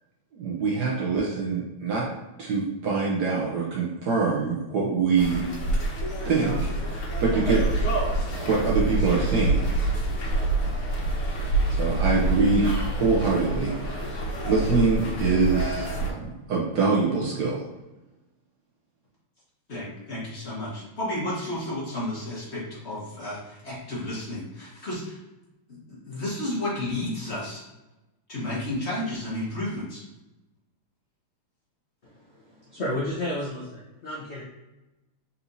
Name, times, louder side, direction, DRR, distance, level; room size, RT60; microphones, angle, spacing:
voice 1, 0.3-2.1 2.4-5.5 6.2-6.6 6.9-7.9 8.3-9.7 11.8-16.2 16.5-17.6, right 4 dB, 60° right, -4 dB, 1.2 m, -24 dB
sound 1, 5.2-16.1, right 2 dB, 85° left, 1.9 m, -26 dB
voice 2, 19.7-25.2 25.9-27.6 28.3-30.0, left 1 dB, 35° left, -7 dB, 1.3 m, -32 dB
voice 3, 32.0-34.4, left 1 dB, 65° left, -5 dB, 0.6 m, -32 dB
4.2 x 4.1 x 2.6 m, 1.0 s
omnidirectional pair, 2.4 m